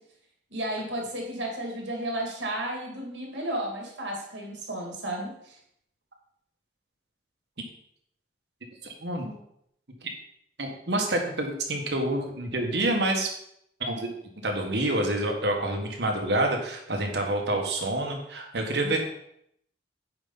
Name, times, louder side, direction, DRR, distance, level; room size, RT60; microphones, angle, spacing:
voice 1, 0.5-5.3, right 1 dB, 85° right, 0 dB, 2.4 m, -33 dB
voice 2, 8.8-9.4 10.0-10.1 10.6-13.3 13.8-14.1 14.4-19.1, right 1 dB, 65° right, 2 dB, 1.5 m, -27 dB
9.0 x 5.2 x 4.0 m, 0.73 s
head